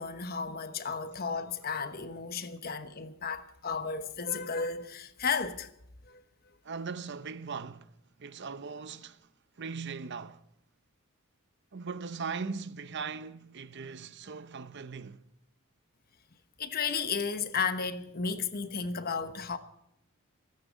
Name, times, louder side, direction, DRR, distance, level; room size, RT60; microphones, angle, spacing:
voice 1, 0.0-5.7 6.1-6.2 16.6-19.6, left 5 dB, 45° left, 1.1 m, -33 dB
voice 2, 6.6-7.9 8.2-9.3 9.6-10.4 11.7-15.3, right 5 dB, 55° right, 0.7 m, -39 dB
27.0 x 9.4 x 5.2 m
head